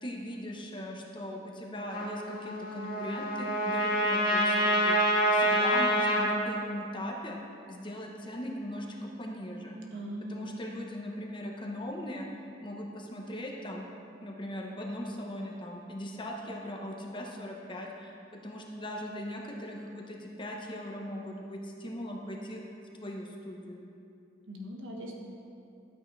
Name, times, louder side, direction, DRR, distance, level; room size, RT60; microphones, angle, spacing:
voice 1, 0.0-5.0 5.3-7.4 7.7-9.8 10.3-12.3 12.6-13.9 14.2-22.6 23.0-23.8, equal, 25° left, 0 dB, 1.1 m, -39 dB
Trumpet, 1.9-6.3, equal, 50° left, 1.7 m, -27 dB
voice 2, 5.4-5.7 9.9-10.5 24.5-25.2, equal, 85° right, -1 dB, 1.4 m, -40 dB
12.5 x 8.7 x 3.4 m, 2.6 s
head